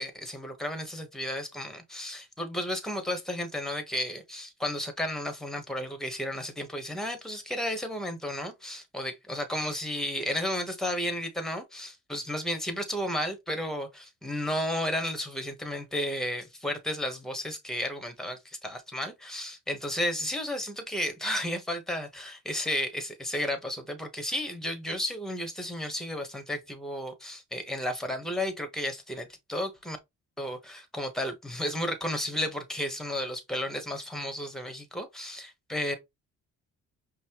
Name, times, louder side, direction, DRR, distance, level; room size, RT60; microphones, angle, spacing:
voice 1, 0.0-30.0 30.4-36.0, left 1 dB, ahead, 1.1 m, -33 dB
5.3 x 2.2 x 2.9 m
cardioid pair, 90°, 30 cm